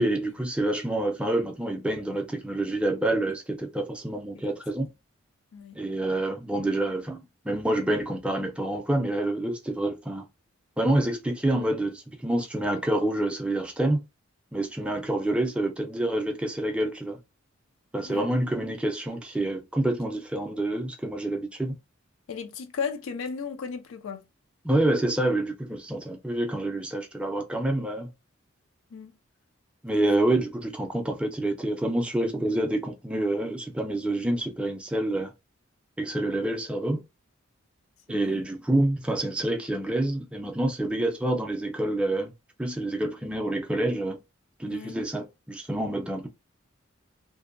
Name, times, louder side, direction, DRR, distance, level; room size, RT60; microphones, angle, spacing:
voice 1, 0.0-4.9 5.7-10.3 10.8-14.0 14.5-17.2 17.9-21.7 24.6-28.1 29.8-35.3 36.0-37.0 38.1-42.3 42.6-44.2 44.6-46.3, right 1 dB, 5° right, 0.3 m, -27 dB
voice 2, 22.3-24.2 28.9-29.2 30.0-30.1 38.1-38.4 44.7-45.0, left 6 dB, 80° left, 0.4 m, -35 dB
2.6 x 2.1 x 2.4 m
head